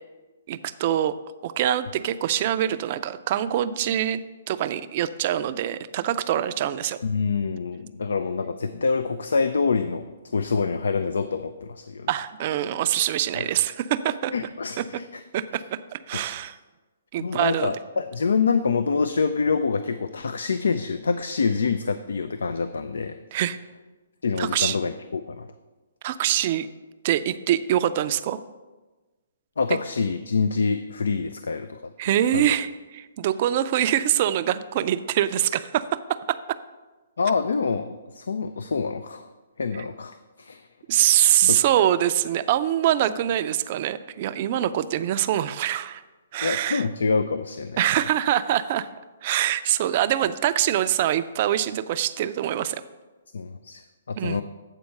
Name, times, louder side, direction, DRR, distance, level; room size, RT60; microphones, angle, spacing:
voice 1, 0.5-1.1 1.4-4.2 4.5-7.0 12.1-14.3 14.8-14.9 15.3-16.6 17.1-17.7 23.3-23.6 24.4-24.8 26.0-26.7 27.0-28.4 32.0-36.6 40.9-46.0 46.3-46.8 47.8-48.9 49.2-52.8 54.2-54.4, right 11 dB, 45° right, 12 dB, 0.4 m, -24 dB
voice 2, 7.0-12.1 13.3-13.5 14.3-15.2 16.1-16.5 17.2-23.2 24.2-25.5 29.6-31.9 32.3-32.5 37.2-39.3 39.6-40.6 41.2-41.6 46.4-47.8 53.3-53.8 54.1-54.4, left 5 dB, 75° left, 11 dB, 0.4 m, -26 dB
8.2 x 4.5 x 6.4 m, 1.2 s
hypercardioid pair, 140°, 0 cm